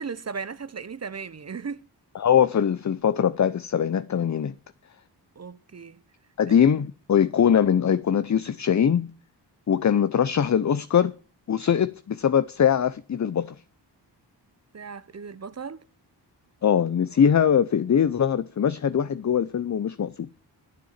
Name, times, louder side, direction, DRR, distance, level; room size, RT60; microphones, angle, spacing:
voice 1, 0.0-1.8 5.4-6.0 6.5-6.6 14.7-15.9, right 5 dB, 35° right, 0.8 m, -36 dB
voice 2, 2.2-4.5 6.4-9.1 9.7-11.1 11.5-13.5 16.6-20.3, left 8 dB, 40° left, 0.7 m, -22 dB
10.0 x 8.8 x 7.3 m
cardioid pair, 55°, 42 cm